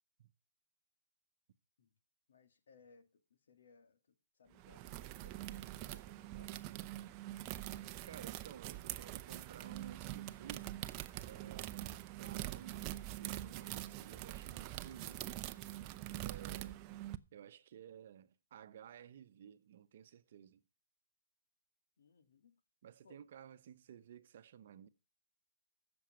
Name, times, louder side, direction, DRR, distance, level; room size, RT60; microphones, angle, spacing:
voice 1, 2.3-6.5 16.4-16.7 22.0-22.6 23.0-23.3, left 4 dB, 75° left, 2.2 m, -65 dB
sound 1, 4.5-17.2, right 15 dB, 30° right, 0.7 m, -44 dB
voice 2, 8.0-10.7 11.2-15.3 16.2-16.8 17.3-20.6 22.8-24.9, right 9 dB, 55° right, 0.9 m, -55 dB
16.0 x 7.1 x 5.0 m
hypercardioid pair, 150°, 0 cm